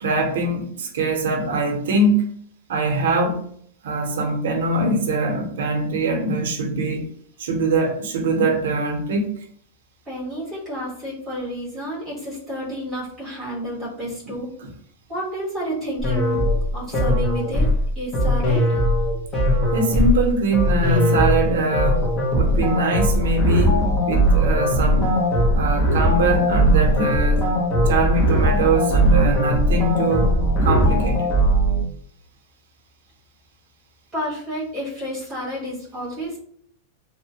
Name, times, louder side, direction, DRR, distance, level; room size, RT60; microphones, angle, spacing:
voice 1, 0.0-2.3 2.7-3.5 3.8-7.0 7.4-9.3 14.3-14.4 14.6-14.7 19.7-22.1 22.3-25.1 25.5-27.5 27.9-30.3 30.6-31.3, right 2 dB, 80° right, 0.6 m, -22 dB
voice 2, 10.0-14.5 15.1-16.5 16.7-17.7 17.9-18.6 34.1-36.4, equal, ahead, 1.2 m, -30 dB
sound 1, 16.0-31.8, equal, 20° left, 0.6 m, -19 dB
2.9 x 2.1 x 2.7 m
supercardioid pair, 180°, 0 cm